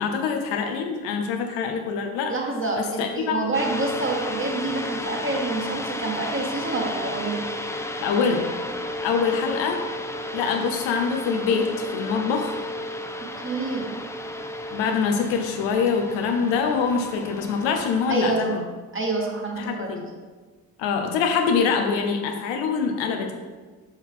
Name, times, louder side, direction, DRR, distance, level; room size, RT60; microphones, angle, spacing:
voice 1, 0.0-2.3 2.8-3.5 8.0-8.5 9.0-9.8 10.3-12.5 14.7-18.6 19.6-20.1 20.8-23.3, left 5 dB, 75° left, 4 dB, 0.9 m, -24 dB
voice 2, 2.3-7.4 13.4-14.0 18.1-18.6 18.9-19.9, right 2 dB, 25° right, -1 dB, 1.9 m, -27 dB
sound 1, 3.5-18.2, left 1 dB, 5° left, 0.6 m, -33 dB
6.4 x 5.4 x 3.7 m, 1.4 s
hypercardioid pair, 45°, 46 cm